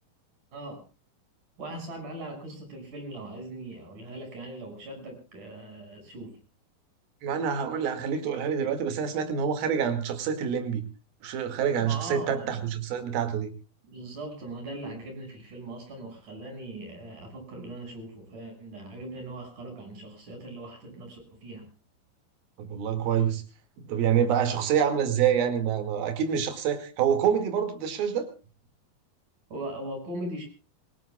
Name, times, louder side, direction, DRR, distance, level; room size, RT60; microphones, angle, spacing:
voice 1, 0.5-0.8 1.6-6.4 11.8-12.7 13.9-21.7 29.5-30.5, right 1 dB, 55° right, 4 dB, 7.5 m, -40 dB
voice 2, 7.2-10.8 11.2-13.5 22.6-23.4 23.9-28.3, right 8 dB, 75° right, 8 dB, 4.0 m, -26 dB
27.0 x 18.5 x 2.3 m, 0.33 s
omnidirectional pair, 4.4 m